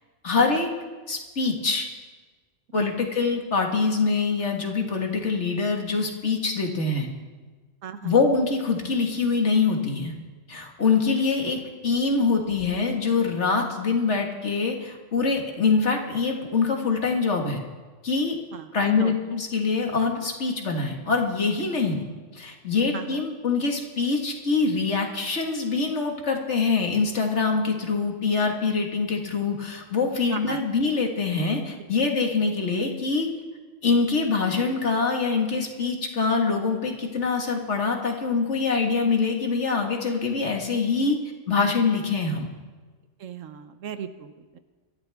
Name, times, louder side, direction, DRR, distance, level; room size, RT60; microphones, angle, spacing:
voice 1, 0.2-0.7 1.1-1.9 2.7-7.1 8.0-10.1 10.5-17.6 18.0-18.4 18.7-22.0 22.3-33.3 33.8-41.2 41.5-42.5, left 4 dB, 65° left, 2 dB, 2.1 m, -24 dB
voice 2, 7.8-8.1 18.5-19.1 22.9-23.3 30.3-30.6 43.2-44.6, right 8 dB, 80° right, 10 dB, 1.3 m, -36 dB
24.0 x 12.5 x 3.5 m, 1.3 s
omnidirectional pair, 1.3 m